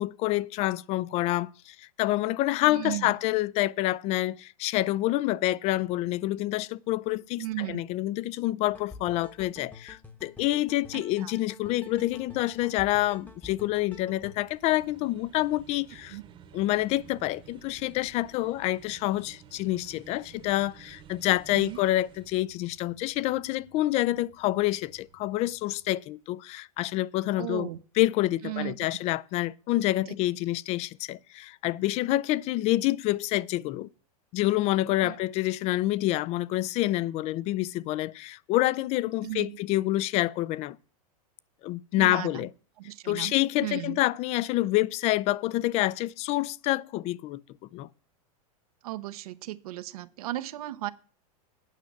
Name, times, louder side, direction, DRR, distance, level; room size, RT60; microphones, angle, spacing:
voice 1, 0.0-16.2 16.5-27.7 28.0-33.9 34.3-40.8 41.6-42.5 43.1-47.4 47.7-47.9, left 16 dB, 35° left, 0.4 m, -27 dB
voice 2, 2.7-3.1 7.4-7.8 10.9-11.3 16.1-16.2 21.5-21.8 27.4-27.8 28.4-28.7 35.0-35.1 39.2-39.6 42.0-42.3 42.8-43.3 43.6-44.0 48.8-50.9, right 16 dB, 75° right, 0.7 m, -35 dB
sound 1, 8.6-14.3, left 3 dB, 10° left, 1.0 m, -49 dB
sound 2, 11.5-26.0, right 8 dB, 25° right, 1.0 m, -54 dB
9.2 x 5.8 x 7.2 m
supercardioid pair, 140°, 19 cm